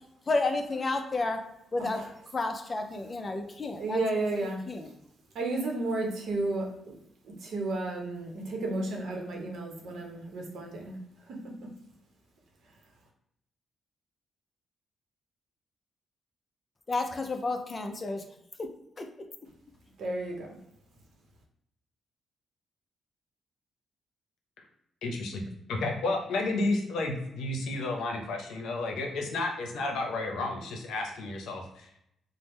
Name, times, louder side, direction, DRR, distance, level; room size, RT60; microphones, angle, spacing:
voice 1, 0.3-1.4 1.7-2.0 2.3-4.9 16.9-18.2 19.0-19.1, left 3 dB, 30° left, 5 dB, 0.4 m, -31 dB
voice 2, 3.8-4.6 5.3-6.9 7.4-11.0 11.3-11.4 20.0-20.5, right 2 dB, 70° right, 0 dB, 0.8 m, -32 dB
voice 3, 25.0-31.9, left 2 dB, 85° left, 2 dB, 0.6 m, -32 dB
3.4 x 2.1 x 3.1 m, 0.77 s
cardioid pair, 120°, 0 cm